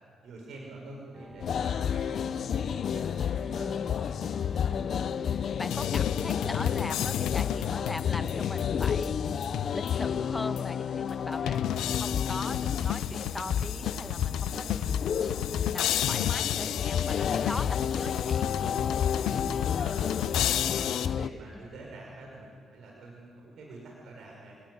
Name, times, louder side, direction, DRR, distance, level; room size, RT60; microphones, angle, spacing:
voice 1, 0.2-4.1 19.3-20.1 20.3-24.6, right 2 dB, 70° right, -1 dB, 6.0 m, -47 dB
sound 1, 1.1-17.6, equal, 15° right, 5.4 m, -50 dB
sound 2, 1.4-21.3, left 8 dB, 60° left, 0.7 m, -31 dB
voice 2, 3.5-3.9 4.6-9.5 9.7-15.2 15.6-18.7 21.5-21.6, left 2 dB, 15° left, 9 dB, 1.5 m, -40 dB
sound 3, 5.7-10.1 10.6-10.7 11.5-21.1, left 11 dB, 85° left, 0.9 m, -33 dB
29.5 x 19.0 x 9.7 m, 2.2 s
cardioid pair, 90°, 0 cm